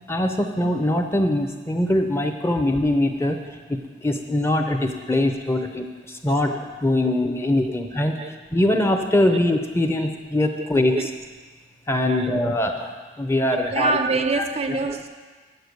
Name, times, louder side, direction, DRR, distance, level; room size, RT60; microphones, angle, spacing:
voice 1, 0.1-3.4 3.7-8.2 8.5-11.0 11.9-12.7 13.2-14.0 14.3-14.4 14.7-14.8, left 1 dB, 15° left, 5 dB, 0.6 m, -22 dB
voice 2, 10.6-11.1 12.1-12.4 13.6-15.1, right 3 dB, 35° right, 7 dB, 0.4 m, -26 dB
7.8 x 6.7 x 8.0 m, 1.4 s
head